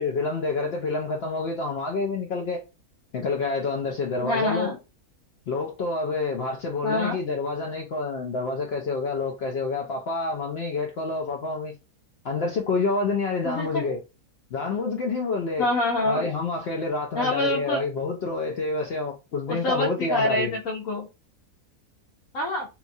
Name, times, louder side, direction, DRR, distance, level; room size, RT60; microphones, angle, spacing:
voice 1, 0.0-2.6 3.1-4.7 5.5-11.7 12.2-14.0 14.5-15.7 16.1-20.5, left 3 dB, 80° left, 0.5 m, -28 dB
voice 2, 4.2-4.8 6.8-7.2 13.4-13.9 15.6-16.3 17.1-17.8 19.5-21.1 22.3-22.7, left 2 dB, 65° left, 1.2 m, -26 dB
2.9 x 2.3 x 2.6 m
omnidirectional pair, 1.6 m